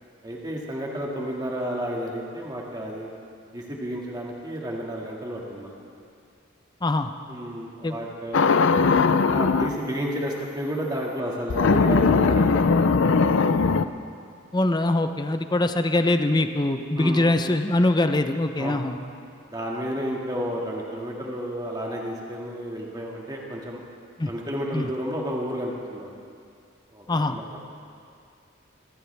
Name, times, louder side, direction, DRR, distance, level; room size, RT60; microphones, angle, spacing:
voice 1, 0.2-3.1 3.5-5.7 7.3-8.6 9.3-13.8 17.0-17.3 18.6-18.8 19.5-23.8 24.3-26.1 26.9-27.6, equal, 20° right, -2 dB, 2.0 m, -31 dB
voice 2, 6.8-7.1 7.8-8.0 14.5-19.0 24.2-24.3 24.7-24.9 27.1-27.4, left 2 dB, 20° left, 8 dB, 0.7 m, -23 dB
sound 1, 8.3-9.8 11.5-13.8, left 4 dB, 75° left, 0.5 m, -19 dB
27.0 x 14.5 x 3.4 m, 2.3 s
head